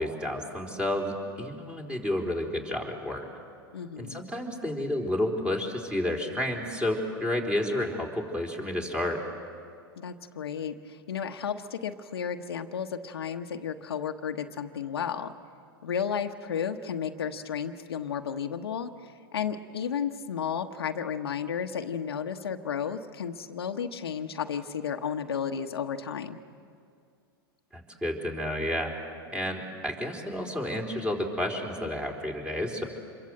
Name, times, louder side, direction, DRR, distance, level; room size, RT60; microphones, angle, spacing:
voice 1, 0.0-3.3 4.0-9.2 27.7-28.9 29.3-32.8, left 1 dB, 10° right, 1 dB, 4.0 m, -30 dB
voice 2, 3.7-4.3 10.0-15.3 15.8-26.4, left 7 dB, 90° left, 6 dB, 1.2 m, -33 dB
27.0 x 22.5 x 7.8 m, 2.3 s
hypercardioid pair, 110°, 13 cm